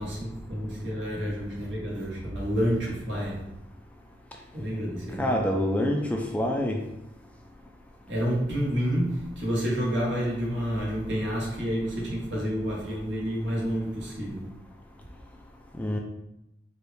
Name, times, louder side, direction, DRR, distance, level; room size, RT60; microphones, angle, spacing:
voice 1, 0.0-3.5 4.5-5.4 8.1-14.5, equal, 80° right, 1.3 m, -29 dB
voice 2, 5.2-6.8 15.8-16.0, left 1 dB, 10° left, 0.3 m, -26 dB
4.2 x 2.3 x 3.3 m
head